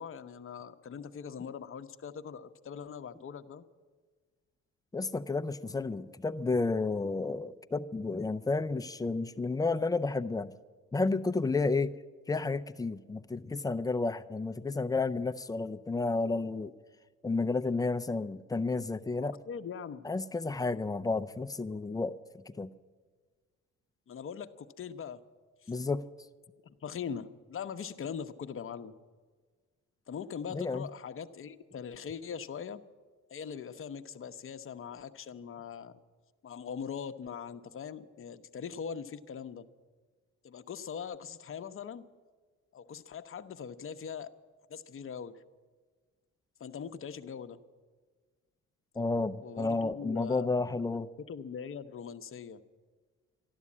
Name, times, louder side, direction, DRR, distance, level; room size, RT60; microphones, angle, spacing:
voice 1, 0.0-3.6 19.2-20.0 24.1-25.2 25.6-25.7 26.6-28.9 30.1-32.8 33.3-36.0 36.4-39.7 40.4-42.1 42.7-44.3 44.7-45.4 46.6-47.6 49.4-52.6, left 7 dB, 45° left, 10 dB, 0.8 m, -41 dB
voice 2, 4.9-10.5 10.9-11.9 12.3-16.7 17.2-19.3 20.0-22.2 22.5-22.7 25.7-26.0 30.5-30.9 49.0-51.1, left 3 dB, 10° left, 10 dB, 0.5 m, -31 dB
12.5 x 12.0 x 8.5 m, 1.5 s
cardioid pair, 90°, 30 cm